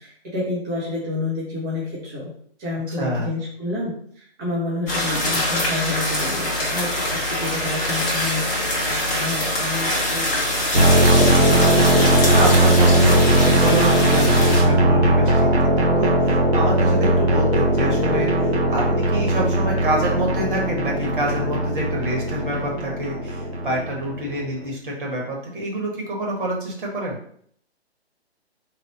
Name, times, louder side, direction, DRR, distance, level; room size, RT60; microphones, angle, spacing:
voice 1, 0.0-2.3 2.6-10.7, left 2 dB, 15° right, -6 dB, 0.7 m, -29 dB
voice 2, 3.0-3.3 11.0-11.6 12.3-27.2, right 1 dB, 50° right, -2 dB, 1.4 m, -27 dB
sound 1, 4.9-14.6, left 1 dB, 15° left, 0.7 m, -24 dB
sound 2, 10.7-24.4, right 1 dB, 75° right, 1.0 m, -18 dB
3.3 x 2.3 x 4.2 m, 0.62 s
figure-of-eight pair, 135°, 33 cm